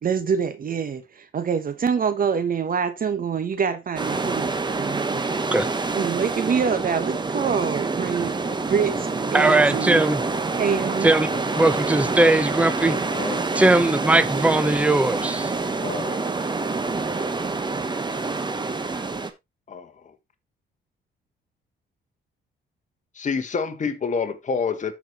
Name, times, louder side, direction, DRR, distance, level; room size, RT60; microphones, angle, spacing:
voice 1, 0.0-5.2 5.9-10.0 10.6-11.1, right 6 dB, 45° right, 1.2 m, -25 dB
sound 1, 4.0-19.3, right 3 dB, 20° right, 1.2 m, -27 dB
voice 2, 9.3-10.2 11.0-11.3 11.5-13.0 13.5-15.5, right 2 dB, 5° right, 0.8 m, -19 dB
voice 3, 11.3-11.6 12.8-13.4 15.8-16.2 19.7-19.9 23.1-24.9, left 5 dB, 40° left, 1.5 m, -28 dB
13.0 x 4.8 x 3.0 m
cardioid pair, 90°, 20 cm